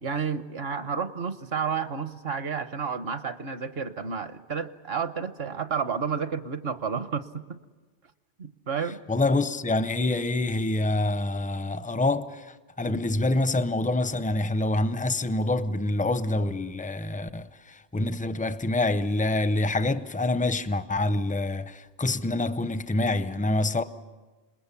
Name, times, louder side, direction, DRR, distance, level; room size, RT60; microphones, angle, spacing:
voice 1, 0.0-7.6 8.4-9.0 12.9-13.0, right 6 dB, 65° right, 1.2 m, -31 dB
voice 2, 9.1-12.5 12.8-23.8, left 2 dB, 10° left, 0.4 m, -26 dB
27.5 x 21.0 x 7.1 m
omnidirectional pair, 1.1 m